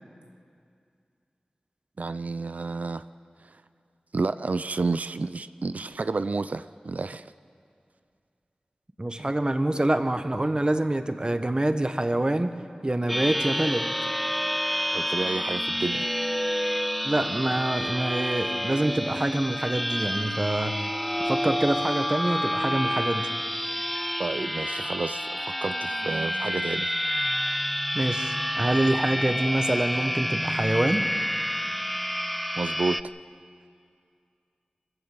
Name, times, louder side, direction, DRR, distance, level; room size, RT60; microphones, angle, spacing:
voice 1, 2.0-3.0 3.4-3.5 4.1-7.3 14.9-16.1 24.2-26.9 32.5-33.0, right 3 dB, 65° right, 13 dB, 0.4 m, -30 dB
voice 2, 9.0-12.5 12.8-13.9 17.0-20.8 21.3-23.3 27.5-27.6 27.9-31.0, right 1 dB, 30° right, 8 dB, 1.2 m, -26 dB
sound 1, 13.1-33.0, equal, ahead, 0.5 m, -29 dB
24.5 x 14.5 x 7.8 m, 2.4 s
wide cardioid pair, 45°, 3 cm